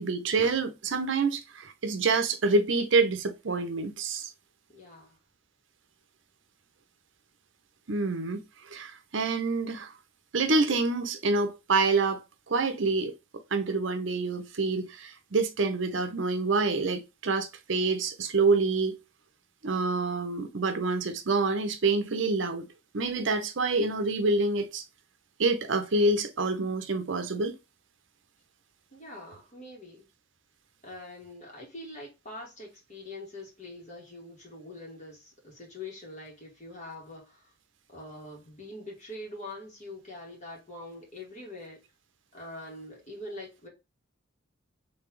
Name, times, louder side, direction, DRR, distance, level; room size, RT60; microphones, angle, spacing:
voice 1, 0.0-4.3 7.9-9.9 10.3-13.1 13.5-19.0 19.6-22.7 22.9-24.8 25.4-27.6, right 3 dB, 65° right, 0.7 m, -27 dB
voice 2, 4.7-5.2 28.9-30.1 30.8-37.5 37.9-41.8 42.3-43.7, left 1 dB, 35° left, 2.1 m, -44 dB
4.1 x 3.3 x 3.1 m
head